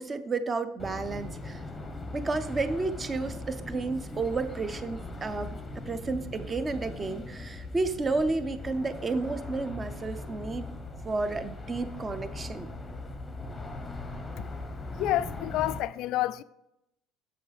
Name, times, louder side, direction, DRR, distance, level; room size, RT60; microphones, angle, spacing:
voice 1, 0.0-1.6 2.1-5.6 5.9-10.7 11.0-12.7, right 3 dB, 20° right, 0.5 m, -31 dB
sound 1, 0.8-15.8, left 2 dB, 10° left, 0.8 m, -40 dB
voice 2, 15.0-16.4, left 14 dB, 55° left, 0.3 m, -29 dB
7.7 x 6.9 x 3.3 m
cardioid pair, 150°, 0 cm